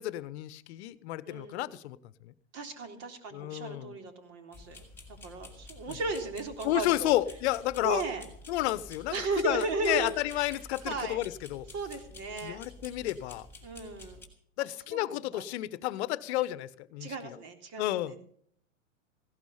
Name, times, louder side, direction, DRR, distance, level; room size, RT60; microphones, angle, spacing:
voice 1, 0.0-2.0 2.2-2.3 3.3-3.9 6.6-8.0 8.5-11.7 12.4-13.5 14.6-17.1 17.8-18.1, left 15 dB, 55° left, 17 dB, 1.1 m, -31 dB
voice 2, 1.3-1.8 2.5-7.1 7.8-8.2 9.1-10.4 10.9-11.2 11.7-12.6 13.6-14.2 14.6-15.4 17.0-18.2, right 3 dB, 40° right, 6 dB, 3.6 m, -36 dB
sound 1, 4.5-14.3, left 2 dB, 5° left, 3.9 m, -50 dB
16.5 x 12.0 x 5.7 m, 0.63 s
hypercardioid pair, 125°, 40 cm